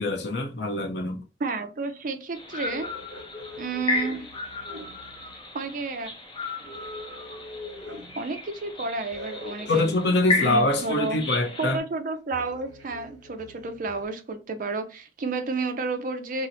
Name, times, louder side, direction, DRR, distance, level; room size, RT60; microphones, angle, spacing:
voice 1, 0.0-1.2 9.7-11.8, left 2 dB, 60° left, 0.7 m, -24 dB
voice 2, 1.4-2.9 3.6-4.2 5.5-6.1 8.2-9.9 10.4-11.2 11.6-16.5, right 3 dB, 45° right, 0.5 m, -31 dB
sound 1, 2.3-11.8, left 3 dB, 30° left, 0.7 m, -34 dB
sound 2, 2.6-5.4 6.6-8.3 9.1-11.4 12.3-14.0, left 2 dB, 75° right, 0.9 m, -43 dB
2.9 x 2.0 x 3.9 m
head